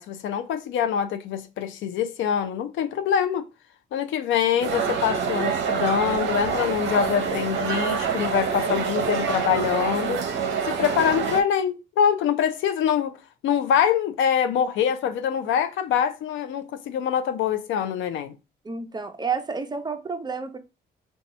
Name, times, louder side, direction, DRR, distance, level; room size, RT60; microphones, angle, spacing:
voice 1, 0.0-3.5 3.9-10.2 10.7-13.2 13.4-18.3, left 8 dB, 75° left, 0.5 m, -24 dB
sound 1, 4.6-11.4, right 6 dB, 65° right, 0.6 m, -26 dB
voice 2, 18.6-20.6, right 5 dB, 20° right, 0.5 m, -30 dB
2.7 x 2.3 x 4.1 m
cardioid pair, 90°, 20 cm